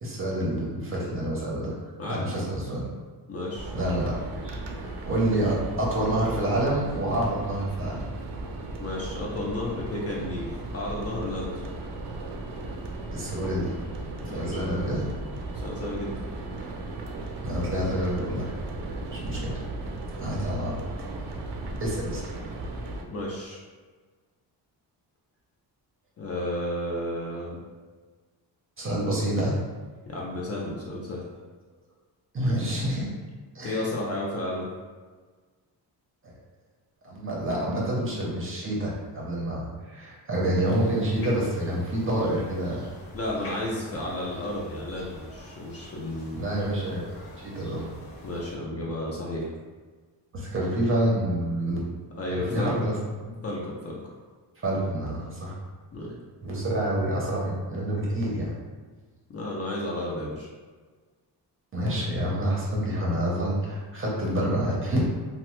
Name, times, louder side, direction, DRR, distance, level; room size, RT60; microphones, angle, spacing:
voice 1, 0.0-1.8 2.1-2.9 3.7-4.2 4.4-8.0 13.1-13.7 14.3-15.0 17.4-18.5 18.8-19.6 20.2-20.8 21.8-22.3 28.8-29.6 32.3-33.1 33.5-33.8 36.2-36.3 37.0-42.9 46.3-47.9 50.3-51.8 52.3-52.9 54.6-55.6 56.4-58.5 61.7-65.0, right 1 dB, 30° right, -4 dB, 0.6 m, -28 dB
voice 2, 2.0-2.3 3.3-3.7 8.8-11.6 14.2-14.8 15.5-16.2 23.0-23.6 26.2-27.6 30.1-31.2 33.6-34.7 43.1-46.6 48.2-49.5 52.2-52.9 53.4-54.1 55.9-56.2 59.3-60.5, left 1 dB, 35° left, -4 dB, 0.4 m, -32 dB
sound 1, 3.5-23.0, right 2 dB, 80° right, 0.5 m, -36 dB
sound 2, 40.6-48.6, left 1 dB, 70° left, 0.9 m, -45 dB
3.0 x 2.1 x 2.9 m, 1.4 s
wide cardioid pair, 165°, 42 cm